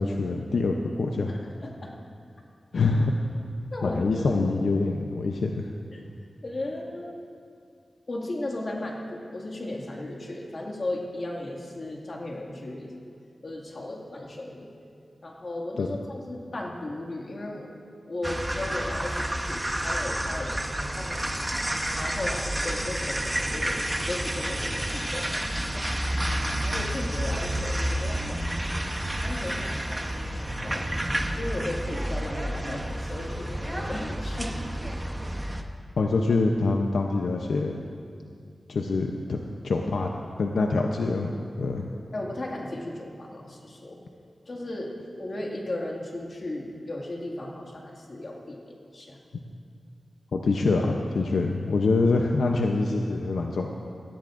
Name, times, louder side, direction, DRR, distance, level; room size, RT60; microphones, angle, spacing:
voice 1, 0.0-1.3 2.7-3.1 3.8-5.7 15.8-15.9 36.0-37.8 38.7-39.4 39.6-40.1 40.4-41.9 50.3-53.7, left 3 dB, 90° left, 2 dB, 0.6 m, -25 dB
voice 2, 1.3-2.0 3.7-4.3 5.9-6.0 6.4-7.2 8.1-12.9 13.4-14.7 15.2-17.7 18.1-23.8 24.1-25.8 26.6-28.5 29.2-31.0 31.4-34.5 42.1-44.0 44.5-49.2, left 1 dB, 55° left, -1 dB, 2.0 m, -36 dB
sound 1, 18.2-35.6, right 1 dB, 15° right, 0.8 m, -30 dB
18.0 x 14.0 x 2.5 m, 2.3 s
wide cardioid pair, 75°, 0 cm